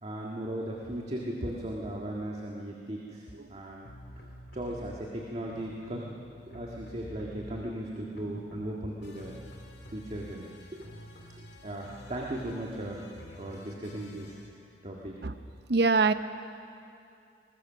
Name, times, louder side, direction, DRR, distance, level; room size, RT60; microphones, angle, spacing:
voice 1, 0.0-3.9 4.2-4.3 4.5-6.0 6.5-9.3 9.9-10.9 11.3-13.0 13.4-14.4 14.8-15.1, right 1 dB, 35° right, -2 dB, 1.8 m, -37 dB
sound 1, 3.8-5.0 5.4-7.9 8.1-14.5, equal, 65° left, 2.6 m, -48 dB
voice 2, 15.7-16.1, right 4 dB, 65° right, 11 dB, 0.8 m, -22 dB
21.5 x 20.5 x 6.3 m, 2.5 s
head